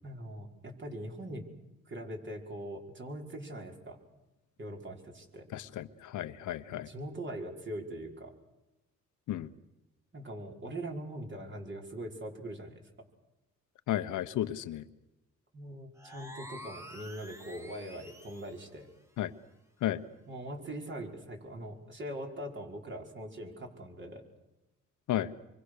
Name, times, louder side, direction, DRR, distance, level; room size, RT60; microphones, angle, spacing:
voice 1, 0.0-1.5 1.9-4.0 4.6-5.5 6.7-8.3 10.1-12.8 15.5-18.9 20.3-24.2, right 1 dB, 40° right, 1 dB, 5.6 m, -42 dB
voice 2, 5.5-6.9 9.3-9.5 13.9-14.8 19.2-19.3 19.8-20.0 25.1-25.3, left 12 dB, 75° left, 11 dB, 1.1 m, -33 dB
sound 1, 15.9-18.7, equal, 10° right, 2.6 m, -48 dB
26.5 x 24.0 x 6.6 m, 0.99 s
cardioid pair, 90°, 30 cm